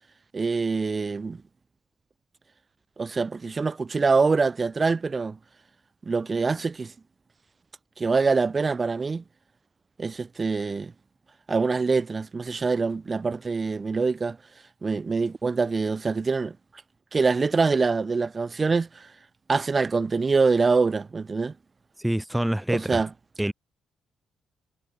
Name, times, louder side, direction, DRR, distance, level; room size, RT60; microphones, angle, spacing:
voice 1, 0.3-1.4 3.0-5.4 6.1-6.9 8.0-9.2 10.0-10.9 11.5-14.4 14.8-16.5 17.1-19.1 19.5-21.5 22.7-23.1, right 4 dB, 30° right, 4.6 m, -24 dB
voice 2, 22.0-23.0 23.4-23.5, right 1 dB, 5° right, 5.0 m, -26 dB
cardioid pair, 90°, 0 cm